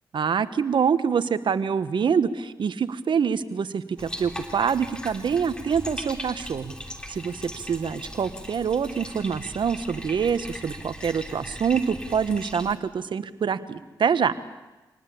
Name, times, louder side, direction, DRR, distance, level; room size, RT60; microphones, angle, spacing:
voice 1, 0.1-6.7 7.1-14.3, right 6 dB, 65° right, 13 dB, 1.3 m, -25 dB
Bathtub (filling or washing), 4.0-12.7, equal, 10° left, 3.5 m, -39 dB
25.5 x 19.0 x 8.6 m, 1.1 s
supercardioid pair, 45°, 9 cm